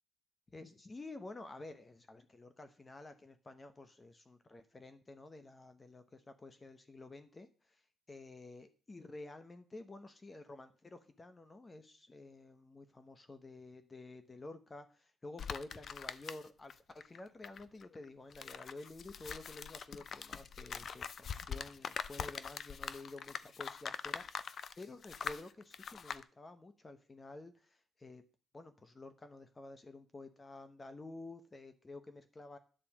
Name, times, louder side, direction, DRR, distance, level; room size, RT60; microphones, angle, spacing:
voice 1, 0.5-28.2 28.5-32.6, left 2 dB, 25° left, 9 dB, 1.1 m, -51 dB
sound 1, 15.4-16.7 17.0-26.2, left 7 dB, 50° left, 0.6 m, -43 dB
10.0 x 4.2 x 7.3 m, 0.39 s
cardioid pair, 90°, 0 cm